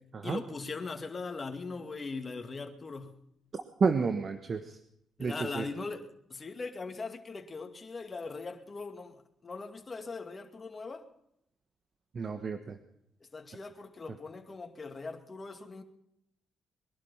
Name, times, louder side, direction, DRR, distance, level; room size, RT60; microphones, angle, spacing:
voice 1, 0.2-3.2 5.2-11.1 13.3-15.8, left 4 dB, 30° left, 2.3 m, -40 dB
voice 2, 3.8-4.8 5.2-5.6 12.1-12.8, right 5 dB, 45° right, 1.3 m, -30 dB
22.0 x 11.5 x 5.7 m
cardioid pair, 90°, 0 cm